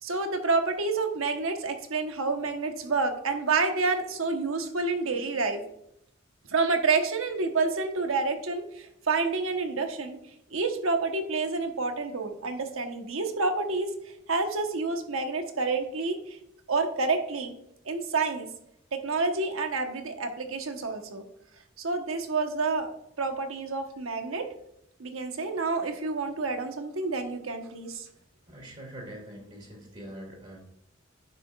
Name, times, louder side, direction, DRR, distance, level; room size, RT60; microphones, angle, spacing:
voice 1, 0.0-5.6 6.5-10.2 10.5-13.9 14.3-16.4 16.7-17.5 17.8-18.5 18.9-21.2 21.8-22.9 23.2-24.5 25.0-28.1, right 3 dB, 85° right, 5 dB, 1.1 m, -28 dB
voice 2, 28.5-30.6, right 1 dB, 35° right, -1 dB, 2.2 m, -43 dB
9.5 x 6.7 x 2.4 m, 0.76 s
head